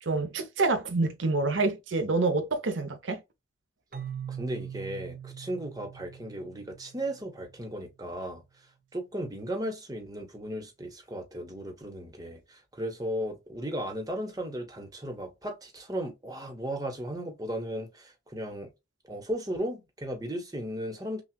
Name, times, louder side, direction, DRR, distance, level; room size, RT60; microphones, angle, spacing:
voice 1, 0.0-3.2, right 3 dB, 85° right, 0.8 m, -27 dB
Keyboard (musical), 3.9-7.6, right 8 dB, 50° right, 0.6 m, -42 dB
voice 2, 4.3-8.4 8.9-18.7 19.1-21.2, equal, 20° right, 1.0 m, -36 dB
5.9 x 2.4 x 2.3 m
head